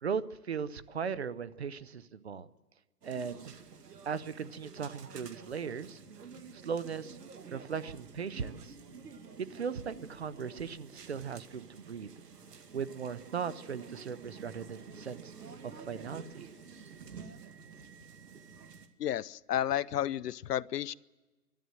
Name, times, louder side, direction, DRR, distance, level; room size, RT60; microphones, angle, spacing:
voice 1, 0.0-2.5 3.0-3.5 4.0-6.0 6.5-7.2 7.5-8.8 9.4-12.1 12.7-15.3 15.6-16.5, right 6 dB, 45° right, 16 dB, 0.6 m, -38 dB
sound 1, 3.0-18.9, right 5 dB, 80° right, 1.9 m, -50 dB
voice 2, 19.0-20.9, left 11 dB, 80° left, 21 dB, 0.6 m, -32 dB
28.5 x 12.5 x 7.7 m, 1.2 s
hypercardioid pair, 165°, 47 cm